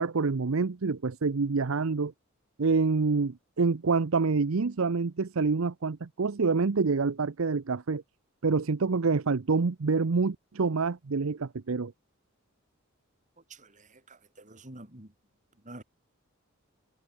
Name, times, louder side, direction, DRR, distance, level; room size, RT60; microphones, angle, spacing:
voice 1, 0.0-2.1 2.6-8.0 8.4-11.9, right 4 dB, 75° right, 0.7 m, -27 dB
voice 2, 13.5-15.1 15.5-15.8, right 2 dB, 35° right, 3.7 m, -48 dB
head